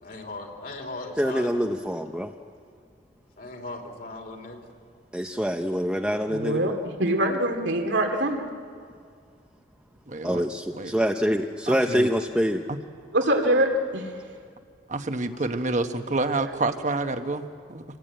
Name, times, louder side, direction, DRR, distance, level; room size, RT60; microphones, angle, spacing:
voice 1, 0.0-1.7 3.4-4.7, left 2 dB, 50° left, 3.3 m, -38 dB
voice 2, 1.2-2.3 5.1-6.8 10.2-12.6, equal, 5° right, 0.7 m, -25 dB
voice 3, 6.3-8.5 13.1-14.1, right 1 dB, 90° right, 2.5 m, -24 dB
voice 4, 10.1-10.5 10.7-10.9 11.7-12.1 12.7-12.8 14.9-17.8, right 2 dB, 40° right, 1.2 m, -28 dB
26.0 x 19.5 x 9.0 m
head